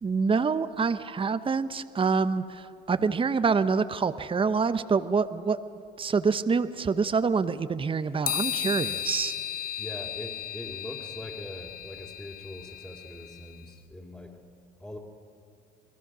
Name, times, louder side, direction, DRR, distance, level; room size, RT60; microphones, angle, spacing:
voice 1, 0.0-5.6 6.0-9.3, right 5 dB, 25° right, 12 dB, 0.9 m, -26 dB
sound 1, 8.3-13.6, left 10 dB, 45° left, 0.8 m, -35 dB
voice 2, 9.8-14.4 14.8-15.0, left 1 dB, 10° left, -5 dB, 3.1 m, -42 dB
28.0 x 19.5 x 6.2 m, 2.4 s
hypercardioid pair, 70°, 21 cm